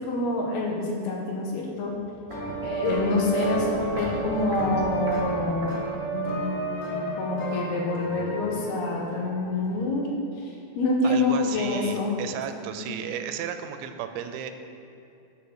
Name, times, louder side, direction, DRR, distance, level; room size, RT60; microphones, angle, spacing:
voice 1, 0.1-1.9 2.6-5.7 6.1-10.1 10.4-12.2 12.8-12.9, left 2 dB, 70° left, -1 dB, 3.0 m, -27 dB
Walk footsteps, 1.7-6.4 6.7-6.8, right 1 dB, 60° right, 3.2 m, -39 dB
sound 1, 2.3-9.9, right 3 dB, 90° left, 1.2 m, -31 dB
voice 2, 11.0-14.5, right 9 dB, 90° right, 8 dB, 3.0 m, -34 dB
10.5 x 6.9 x 6.4 m, 2.7 s
omnidirectional pair, 5.2 m